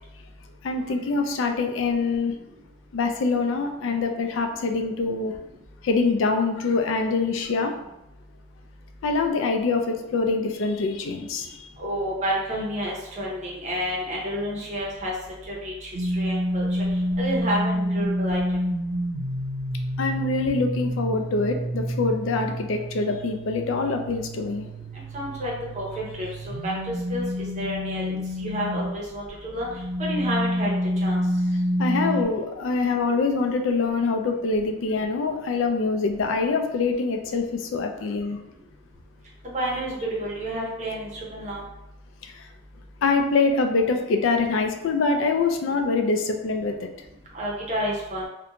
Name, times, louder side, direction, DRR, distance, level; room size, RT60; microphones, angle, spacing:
voice 1, 0.6-2.4 2.9-5.3 5.8-7.7 9.0-11.5 20.0-24.6 31.8-38.4 43.0-46.9, left 3 dB, 85° left, 5 dB, 0.3 m, -24 dB
voice 2, 11.8-15.1 15.5-16.7 17.2-18.4 25.1-26.7 27.1-29.2 29.5-29.7 30.0-30.7 31.0-31.2 39.4-41.6 47.3-48.3, equal, 35° right, -3 dB, 0.7 m, -30 dB
sound 1, 15.9-29.0 29.6-32.2, equal, 80° right, 0.4 m, -28 dB
2.5 x 2.2 x 2.8 m, 0.89 s
head